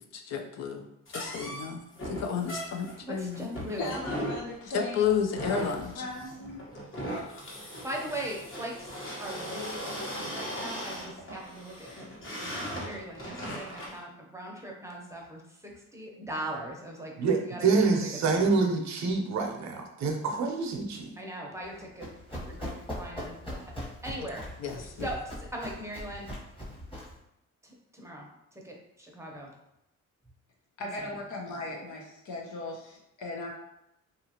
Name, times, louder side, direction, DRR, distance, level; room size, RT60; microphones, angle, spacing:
voice 1, 0.1-0.9 1.1-3.5 4.7-6.0 24.6-25.1, left 7 dB, 60° left, 4 dB, 0.5 m, -31 dB
sound 1, 1.1-14.0, equal, 40° left, 1.1 m, -38 dB
voice 2, 3.0-4.0 7.8-8.9 9.2-18.6 21.2-23.6 24.0-24.4 24.7-26.3 27.6-29.5 30.8-31.1, right 1 dB, 10° right, -1 dB, 0.6 m, -40 dB
voice 3, 3.8-5.1 5.9-6.6 30.8-33.5, left 2 dB, 85° left, 0 dB, 0.8 m, -37 dB
voice 4, 17.2-21.1, right 4 dB, 65° right, 3 dB, 0.6 m, -26 dB
Run, 21.6-27.2, equal, 15° left, 1.1 m, -40 dB
2.8 x 2.4 x 2.8 m, 0.84 s
cardioid pair, 90°, 30 cm